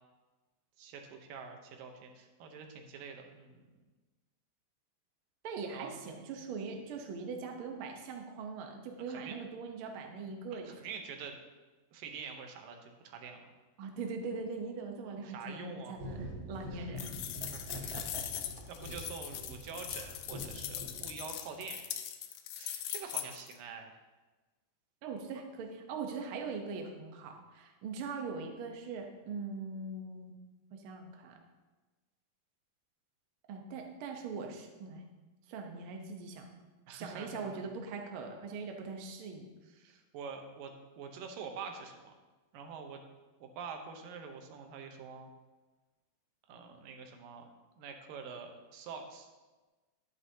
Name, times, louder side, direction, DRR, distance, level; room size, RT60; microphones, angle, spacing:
voice 1, 0.8-3.6 5.7-6.0 9.1-9.4 10.5-11.4 11.9-13.5 15.3-15.9 16.7-16.9 17.4-18.1 18.7-21.9 22.5-24.0 36.9-37.6 39.8-42.1 42.5-43.0 43.4-45.3 46.5-47.5 47.8-49.3, right 5 dB, 90° right, 4 dB, 2.6 m, -46 dB
voice 2, 5.4-10.7 13.8-17.1 17.7-18.2 25.0-30.3 30.7-31.4 33.5-35.0 35.5-36.5 36.9-39.5, right 4 dB, 75° right, 3 dB, 1.2 m, -41 dB
sound 1, 15.9-21.5, left 1 dB, 25° right, 2.1 m, -45 dB
sound 2, 17.0-23.5, left 11 dB, 80° left, 1.8 m, -41 dB
11.0 x 9.4 x 2.8 m, 1.2 s
omnidirectional pair, 3.8 m